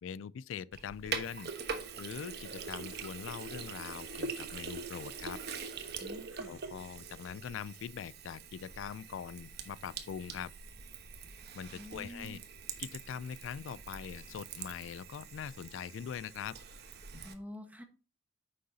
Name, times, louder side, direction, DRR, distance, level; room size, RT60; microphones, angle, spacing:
voice 1, 0.0-1.5 2.0-5.4 6.5-10.5 11.5-12.4 12.8-16.6, left 7 dB, 85° left, 0.3 m, -42 dB
Sink (filling or washing), 0.7-17.3, right 5 dB, 60° right, 1.2 m, -44 dB
voice 2, 6.0-6.6 11.7-12.4 17.2-17.8, equal, 10° right, 1.2 m, -47 dB
9.3 x 6.5 x 2.8 m
head